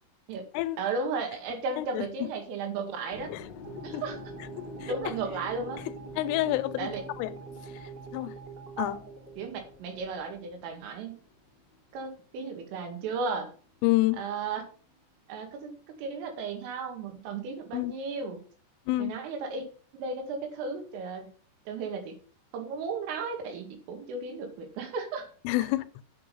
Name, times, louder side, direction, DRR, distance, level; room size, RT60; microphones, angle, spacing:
voice 1, 0.8-3.3 3.8-4.2 4.9-5.8 6.8-7.0 9.4-11.2 11.9-13.5 14.2-14.6 15.3-18.4 19.0-19.6 19.9-21.3 21.7-22.2 22.5-25.3, right 4 dB, 85° right, 4.7 m, -34 dB
voice 2, 1.8-2.3 3.3-3.4 3.9-4.0 4.8-4.9 6.2-7.3 8.1-8.4 8.8-9.1 13.8-14.2 17.7-17.9 18.9-19.1 25.4-25.9, left 17 dB, 85° left, 3.2 m, -28 dB
sound 1, 3.1-13.2 13.5-15.1, left 3 dB, 70° left, 1.5 m, -48 dB
sound 2, 3.6-10.1, right 6 dB, 25° right, 3.0 m, -44 dB
8.5 x 8.1 x 5.4 m
omnidirectional pair, 5.6 m